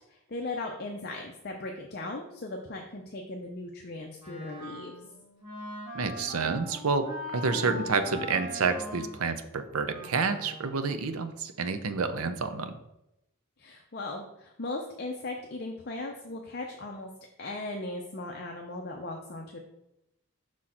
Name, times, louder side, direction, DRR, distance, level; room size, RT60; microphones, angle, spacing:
voice 1, 0.1-4.9 7.5-7.9 13.6-17.1 17.4-19.6, left 2 dB, 45° left, 1 dB, 0.6 m, -38 dB
Wind instrument woodwind instrument, 4.2-10.7, left 1 dB, 20° right, 2.5 m, -41 dB
voice 2, 5.9-12.7, right 4 dB, 75° right, 9 dB, 0.6 m, -29 dB
6.3 x 4.2 x 4.3 m, 0.88 s
head